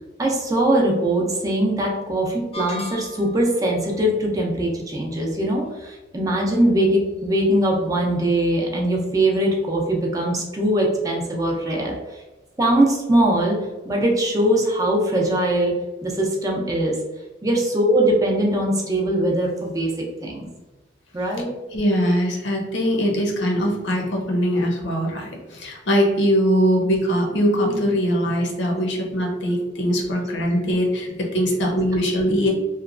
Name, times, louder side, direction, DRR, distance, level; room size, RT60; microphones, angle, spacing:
voice 1, 0.2-12.2 12.6-13.6 13.9-15.8 16.0-17.0 17.4-20.5 21.1-21.5, right 1 dB, 20° right, -1 dB, 0.4 m, -21 dB
sound 1, 2.5-3.5, equal, 30° left, 0.6 m, -34 dB
voice 2, 21.7-32.5, equal, 75° left, 1 dB, 0.7 m, -21 dB
2.9 x 2.2 x 2.4 m, 1.1 s
head